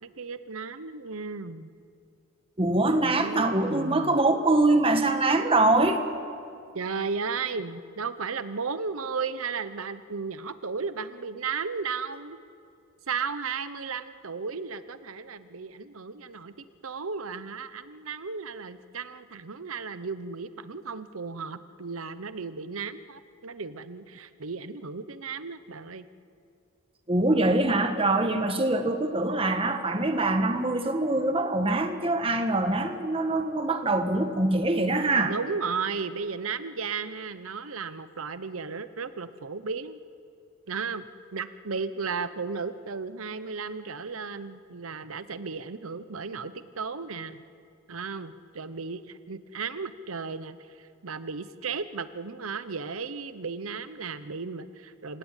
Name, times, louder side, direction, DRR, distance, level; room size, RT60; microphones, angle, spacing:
voice 1, 0.0-1.7 3.0-4.2 6.7-12.4 13.1-26.1 35.2-40.0 40.7-47.4 47.9-55.2, right 5 dB, 70° right, 13 dB, 0.9 m, -35 dB
voice 2, 2.6-6.0 27.1-35.3, right 2 dB, 25° right, 6 dB, 1.5 m, -24 dB
27.0 x 17.0 x 9.1 m, 2.4 s
head